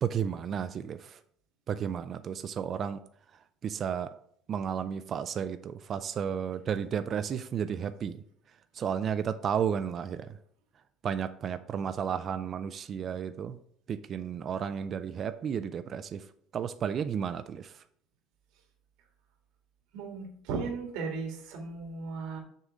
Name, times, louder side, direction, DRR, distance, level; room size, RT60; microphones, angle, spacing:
voice 1, 0.0-1.2 1.7-3.0 3.6-4.1 4.5-8.2 8.7-10.3 11.0-13.6 13.9-16.2 16.5-17.7, right 8 dB, 35° right, 11 dB, 0.3 m, -32 dB
voice 2, 19.9-22.4, right 4 dB, 80° right, 2 dB, 1.9 m, -36 dB
6.5 x 3.7 x 6.2 m, 0.65 s
cardioid pair, 150°, 0 cm